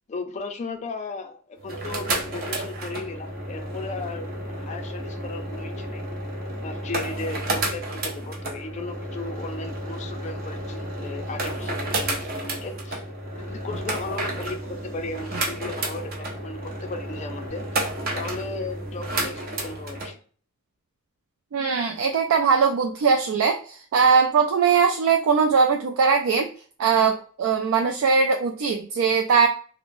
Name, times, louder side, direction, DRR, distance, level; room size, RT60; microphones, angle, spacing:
voice 1, 0.1-6.1 6.6-13.0 13.4-17.9 18.1-20.2, left 3 dB, 35° left, 6 dB, 0.4 m, -36 dB
sound 1, 1.6-20.1, right 1 dB, 45° right, 0.6 m, -31 dB
voice 2, 21.5-26.5 26.8-29.5, right 5 dB, 90° right, 3 dB, 0.3 m, -20 dB
3.0 x 2.0 x 2.5 m, 0.43 s
head